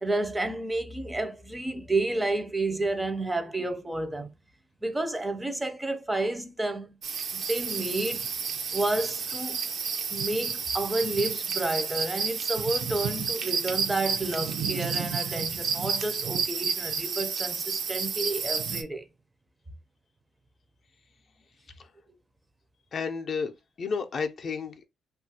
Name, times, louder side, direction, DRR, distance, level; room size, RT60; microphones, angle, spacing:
voice 1, 0.0-4.3 4.8-6.9 7.3-8.3 8.7-9.6 10.1-19.1, right 2 dB, 15° right, 0.5 m, -30 dB
sound 1, 7.0-18.8, right 6 dB, 65° right, 0.5 m, -31 dB
voice 2, 22.9-23.5 23.8-24.9, left 5 dB, 50° left, 0.4 m, -31 dB
2.8 x 2.3 x 2.7 m
cardioid pair, 90°, 0 cm